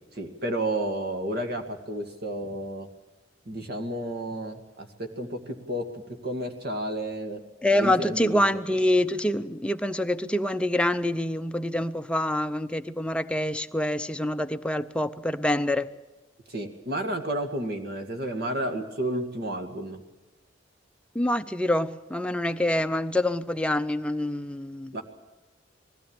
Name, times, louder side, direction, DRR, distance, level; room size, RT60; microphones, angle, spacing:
voice 1, 0.2-2.9 3.5-7.4 7.7-8.6 16.5-20.0 24.9-25.0, right 1 dB, 55° right, 2.1 m, -31 dB
voice 2, 7.6-15.9 21.1-25.0, left 1 dB, 5° left, 0.6 m, -26 dB
21.0 x 16.0 x 8.9 m
head